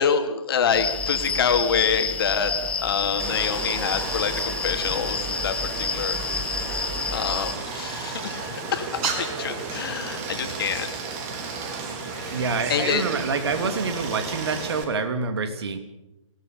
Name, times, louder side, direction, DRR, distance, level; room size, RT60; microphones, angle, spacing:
voice 1, 0.0-6.2 7.1-10.9 12.1-13.0, left 7 dB, 45° left, 6 dB, 2.9 m, -26 dB
sound 1, 0.7-7.5, left 4 dB, 5° left, 1.2 m, -29 dB
Stream, 3.2-14.8, right 4 dB, 30° right, 3.7 m, -33 dB
voice 2, 12.3-15.8, right 4 dB, 50° right, 8 dB, 3.0 m, -27 dB
26.5 x 18.5 x 7.0 m, 0.96 s
figure-of-eight pair, 130°, 17 cm